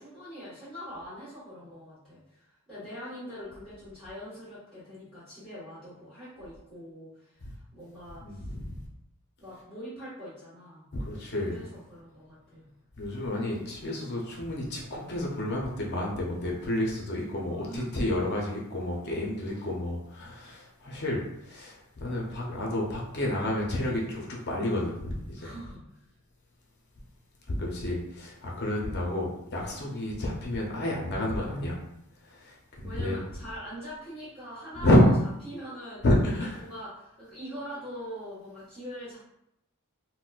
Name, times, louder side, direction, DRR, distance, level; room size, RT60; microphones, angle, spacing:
voice 1, 0.0-8.5 9.4-12.7 17.5-17.9 25.4-25.9 32.8-35.1 35.4-36.0 36.6-39.2, equal, ahead, -15 dB, 1.3 m, -43 dB
voice 2, 8.2-8.6 10.9-11.6 13.0-21.2 21.5-25.4 27.6-31.7 32.8-33.2 34.8-35.0 36.0-36.6, left 1 dB, 50° left, -2 dB, 0.6 m, -29 dB
4.0 x 2.1 x 2.3 m, 0.78 s
head